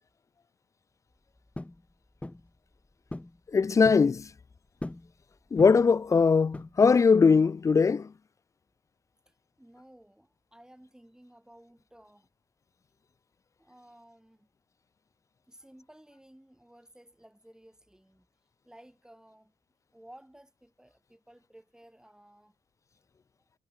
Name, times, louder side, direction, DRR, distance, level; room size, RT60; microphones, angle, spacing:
sound 1, 1.6-1.8 2.2-2.5 3.1-3.4 3.6-4.1 4.8-5.1 5.6-5.9 6.5-7.0, left 1 dB, 10° left, 1.1 m, -40 dB
voice 1, 3.5-4.2 5.5-8.1, left 5 dB, 30° left, 0.4 m, -21 dB
voice 2, 9.3-12.3 13.6-14.5 15.5-18.3 18.6-19.5 19.9-22.6, right 1 dB, 5° right, 7.2 m, -55 dB
hypercardioid pair, 50°, 10 cm